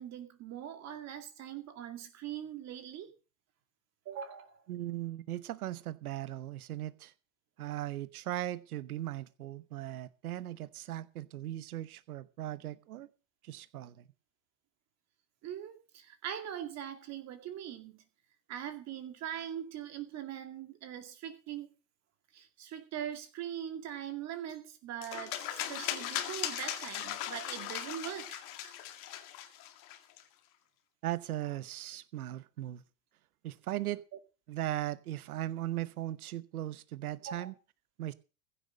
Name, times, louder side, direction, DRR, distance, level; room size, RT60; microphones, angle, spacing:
voice 1, 0.0-3.1 4.1-4.6 15.4-18.0 18.5-21.7 22.3-28.7 37.3-37.5, right 10 dB, 35° right, 2.3 m, -42 dB
voice 2, 4.7-7.1 7.6-13.1 13.4-14.0 31.0-32.8 33.4-34.0 34.5-37.5 38.0-38.1, right 14 dB, 80° right, 1.0 m, -38 dB
sound 1, 25.0-30.2, left 12 dB, 45° left, 2.2 m, -38 dB
15.5 x 8.2 x 6.3 m
hypercardioid pair, 115°, 44 cm